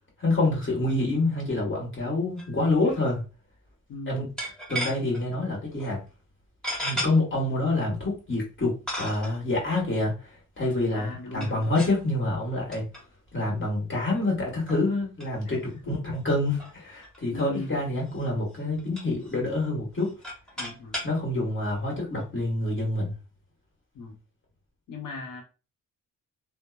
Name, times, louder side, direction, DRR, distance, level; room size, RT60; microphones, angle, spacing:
voice 1, 0.2-3.2 4.1-4.2 4.7-6.0 6.8-12.8 13.3-20.1 21.0-23.1, left 2 dB, 35° left, 1.4 m, -27 dB
sound 1, 2.4-2.6 2.8-3.0 4.4-5.2 5.8-5.9 6.6-7.1 8.0-8.1 8.9-9.4 11.3-12.0 12.7-13.0 13.4-13.5 14.2-14.3 14.7-14.8 15.2-15.3 15.6-15.7 15.9-16.0 16.5-17.4 18.1-18.3 18.5-19.4 19.9-21.1, equal, ahead, 1.3 m, -34 dB
voice 2, 3.9-4.4 11.0-11.7 15.5-15.6 15.8-16.0 17.3-17.8 20.6-21.0 23.9-24.2 24.9-25.4, left 2 dB, 80° left, 0.9 m, -38 dB
2.8 x 2.0 x 2.3 m
cardioid pair, 90°, 33 cm